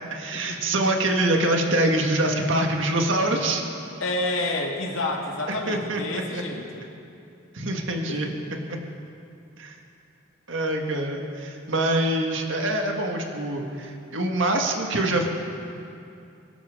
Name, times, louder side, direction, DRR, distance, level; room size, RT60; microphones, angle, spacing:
voice 1, 0.1-3.6 5.7-6.4 7.5-8.3 8.7-8.8 9.6-9.8 10.5-15.3, right 1 dB, 70° right, 2 dB, 1.6 m, -25 dB
voice 2, 4.0-6.9 8.1-8.3, left 2 dB, 80° left, 0 dB, 1.9 m, -29 dB
22.5 x 12.0 x 3.7 m, 2.7 s
head